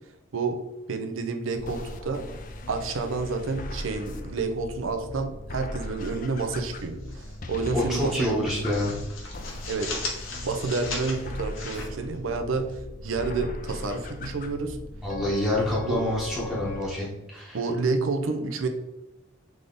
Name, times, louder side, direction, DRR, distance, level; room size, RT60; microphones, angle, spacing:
voice 1, 0.9-2.2 2.7-8.3 9.7-9.9 10.4-12.7 13.0-14.8 15.8-16.1 17.5-18.7, right 4 dB, 80° right, 6 dB, 0.6 m, -29 dB
sound 1, 1.5-16.9, left 1 dB, 40° left, 0.4 m, -38 dB
sound 2, 6.5-7.4 7.7-7.9 8.3-12.7, left 3 dB, 85° left, 1.2 m, -37 dB
voice 2, 7.7-8.9 15.0-17.6, left 1 dB, ahead, -6 dB, 0.9 m, -27 dB
3.7 x 3.4 x 3.8 m, 0.95 s
head